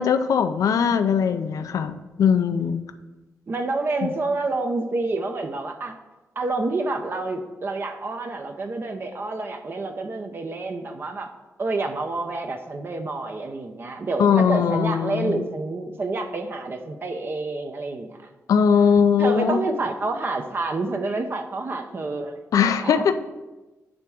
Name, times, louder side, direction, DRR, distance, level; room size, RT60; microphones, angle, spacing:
voice 1, 0.0-2.8 4.0-4.1 14.2-15.4 18.5-19.6 22.5-23.1, left 7 dB, 80° left, 9 dB, 0.5 m, -20 dB
voice 2, 3.5-6.0 6.4-11.3 11.6-18.2 19.2-23.0, right 3 dB, 40° right, 5 dB, 0.6 m, -28 dB
8.6 x 3.5 x 6.3 m, 1.1 s
wide cardioid pair, 115°, 6 cm